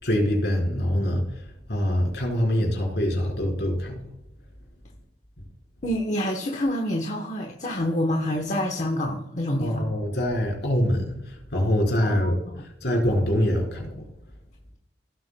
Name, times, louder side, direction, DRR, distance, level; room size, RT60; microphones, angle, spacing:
voice 1, 0.0-1.2 1.7-4.1 9.6-11.2 11.5-12.4 12.8-14.1, equal, 65° left, 0 dB, 4.1 m, -24 dB
voice 2, 5.8-9.8 12.0-12.6, left 1 dB, 40° left, 2 dB, 1.0 m, -27 dB
16.5 x 8.2 x 2.2 m, 0.86 s
head